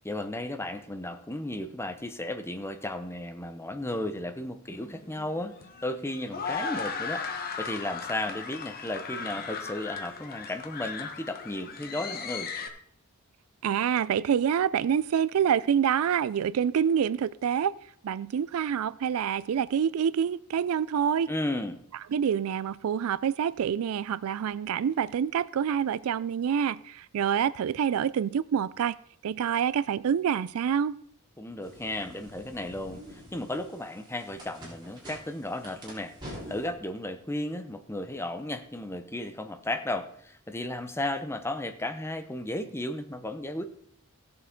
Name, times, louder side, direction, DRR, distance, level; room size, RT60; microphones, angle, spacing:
voice 1, 0.0-5.6 5.8-12.5 21.3-21.8 31.4-43.6, left 1 dB, 10° left, 0.8 m, -34 dB
sound 1, 4.7-12.7, left 5 dB, 45° left, 1.1 m, -37 dB
voice 2, 13.6-17.7 18.0-21.3 22.1-26.8 27.1-28.9 29.2-30.9, right 8 dB, 70° right, 0.3 m, -26 dB
sound 2, 31.6-36.7, equal, 20° right, 3.6 m, -46 dB
16.5 x 6.8 x 3.7 m
head